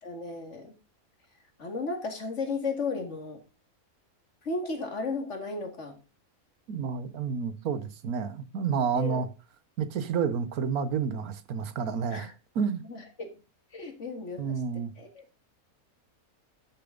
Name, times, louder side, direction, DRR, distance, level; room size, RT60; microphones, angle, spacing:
voice 1, 0.0-0.8 1.6-3.4 4.4-6.0 9.0-9.2 12.1-12.3 12.8-13.4 13.7-14.6 15.0-15.1, left 3 dB, 55° left, 2.3 m, -34 dB
voice 2, 6.7-9.3 9.8-12.8 14.4-14.9, right 6 dB, 85° right, 1.5 m, -30 dB
12.0 x 6.8 x 3.8 m
omnidirectional pair, 1.5 m